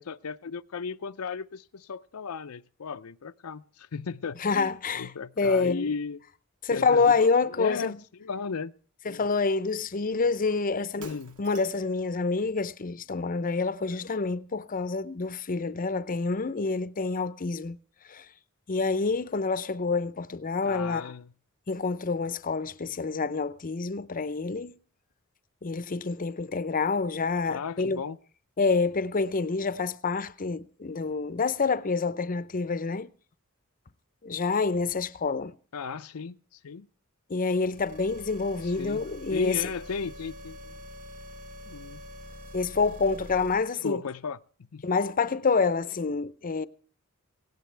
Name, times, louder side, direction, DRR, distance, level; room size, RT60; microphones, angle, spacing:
voice 1, 0.0-6.2 6.7-7.1 7.6-8.7 9.1-9.2 11.0-11.4 20.6-21.3 27.5-28.2 35.7-36.9 38.6-39.0 39.3-40.8 41.6-42.0 43.8-44.4 44.7-44.8, left 5 dB, 80° left, 0.6 m, -35 dB
voice 2, 4.4-5.1 5.4-5.9 6.6-7.9 9.1-17.8 18.1-18.2 18.7-21.0 21.7-24.8 25.6-28.0 28.6-33.1 34.2-35.5 37.3-39.7 42.5-44.0 44.8-46.7, left 4 dB, 40° left, 0.6 m, -27 dB
Shatter, 11.0-12.0, right 6 dB, 90° right, 2.0 m, -49 dB
sound 1, 37.6-43.6, equal, 40° right, 3.9 m, -45 dB
17.5 x 17.0 x 3.3 m
head